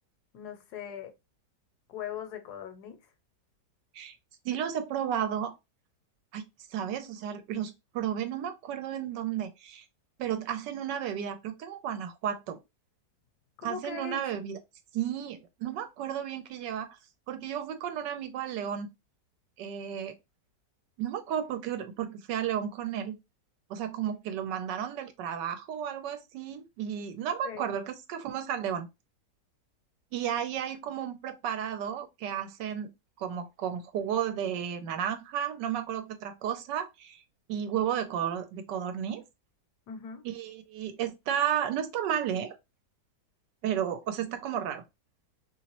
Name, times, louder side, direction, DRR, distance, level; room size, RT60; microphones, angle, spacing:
voice 1, 0.3-1.1 1.9-3.0 13.6-14.2 27.4-27.7 39.9-40.2, left 8 dB, 70° left, 1.1 m, -40 dB
voice 2, 4.4-5.5 6.3-6.4 6.7-9.8 10.2-12.6 13.6-14.6 14.9-17.0 17.3-18.9 19.6-20.1 21.0-23.1 23.7-28.9 30.1-32.9 33.2-37.2 37.5-39.2 40.2-42.6 43.6-44.8, right 9 dB, 85° right, 1.3 m, -33 dB
3.0 x 2.9 x 2.9 m
omnidirectional pair, 1.9 m